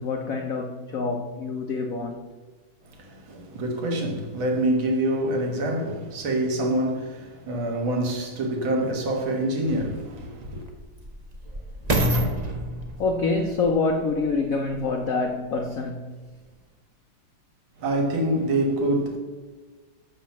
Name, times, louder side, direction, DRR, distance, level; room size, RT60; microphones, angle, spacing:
voice 1, 0.0-2.3 13.0-16.2, left 3 dB, 75° left, 0.7 m, -26 dB
voice 2, 3.0-10.6 17.8-19.2, right 1 dB, 65° right, 2.2 m, -26 dB
sound 1, 8.9-9.0 9.7-15.0 15.6-15.7, right 1 dB, 50° right, 0.4 m, -29 dB
11.5 x 4.3 x 7.3 m
omnidirectional pair, 2.4 m